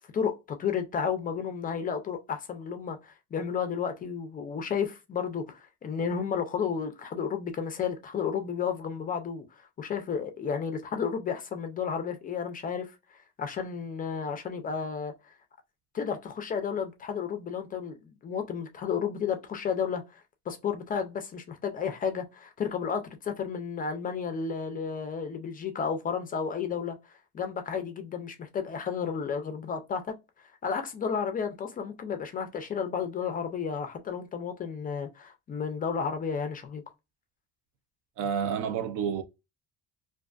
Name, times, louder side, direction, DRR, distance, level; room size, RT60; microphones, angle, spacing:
voice 1, 0.1-15.3 15.9-30.1 30.6-36.8, left 6 dB, 25° left, 0.3 m, -32 dB
voice 2, 38.2-39.2, right 7 dB, 70° right, 0.6 m, -29 dB
2.5 x 2.4 x 2.3 m
cardioid pair, 145°, 32 cm